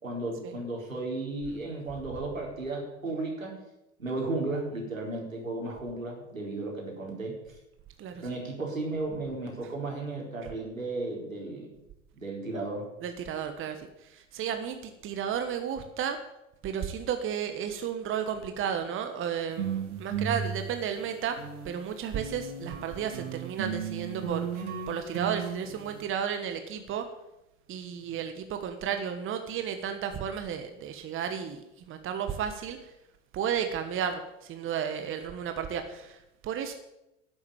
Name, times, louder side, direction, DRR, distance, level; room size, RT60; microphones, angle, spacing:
voice 1, 0.0-3.6 4.0-7.4 8.1-11.8 12.1-12.9 28.0-28.2, right 2 dB, 85° right, -1 dB, 4.4 m, -34 dB
voice 2, 8.0-8.3 9.6-9.7 13.0-16.2 16.6-21.4 21.6-27.0 27.7-32.9 33.3-36.7, right 8 dB, 30° right, 7 dB, 1.4 m, -33 dB
sound 1, 19.5-21.8 22.1-26.1, right 7 dB, 65° right, 2.5 m, -35 dB
11.5 x 7.9 x 8.9 m, 0.89 s
figure-of-eight pair, 85°, 39 cm